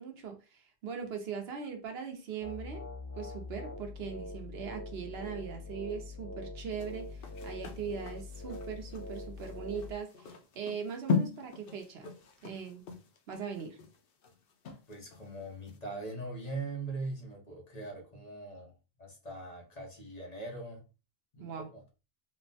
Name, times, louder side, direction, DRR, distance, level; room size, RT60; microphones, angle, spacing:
voice 1, 0.0-2.8 3.1-12.1 12.4-12.8 13.3-13.8 21.4-21.7, right 6 dB, 80° right, 1.0 m, -40 dB
sound 1, 2.4-9.9, left 2 dB, 20° left, 0.4 m, -43 dB
sound 2, 6.7-15.3 15.7-15.8, left 5 dB, 65° left, 0.8 m, -38 dB
voice 2, 14.9-20.8 21.3-21.8, right 2 dB, 40° left, 1.0 m, -41 dB
3.7 x 2.1 x 2.6 m
omnidirectional pair, 1.0 m